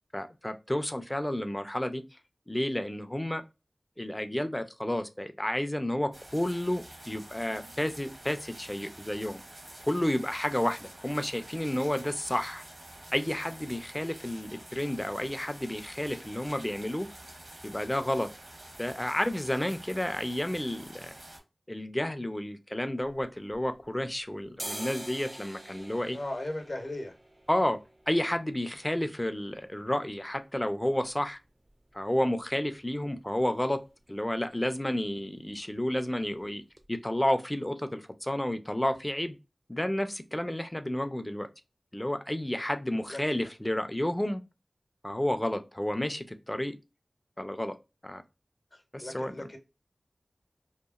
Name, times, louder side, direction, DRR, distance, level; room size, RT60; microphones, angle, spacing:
voice 1, 0.1-2.0 2.5-3.4 4.0-9.4 9.8-12.6 13.1-17.1 17.6-18.3 18.8-21.1 21.7-26.2 27.5-27.8 28.1-31.4 31.9-33.8 34.1-36.6 36.9-39.4 39.7-41.5 41.9-44.4 45.0-46.7 47.4-47.8 48.0-48.2 48.9-49.5, left 1 dB, 20° left, 0.4 m, -31 dB
sound 1, 6.1-21.4, right 1 dB, 70° right, 1.1 m, -48 dB
sound 2, 23.0-24.1 24.4-32.1 32.4-32.5 32.8-33.4 33.7-33.9 34.2-34.4 34.7-35.4 35.7-35.9 36.4-36.5 36.8-36.9, right 1 dB, 35° right, 0.5 m, -46 dB
voice 2, 26.1-27.1 43.1-43.5 48.7-49.6, left 1 dB, 60° left, 0.8 m, -38 dB
2.9 x 2.4 x 2.3 m
wide cardioid pair, 45°, 0 cm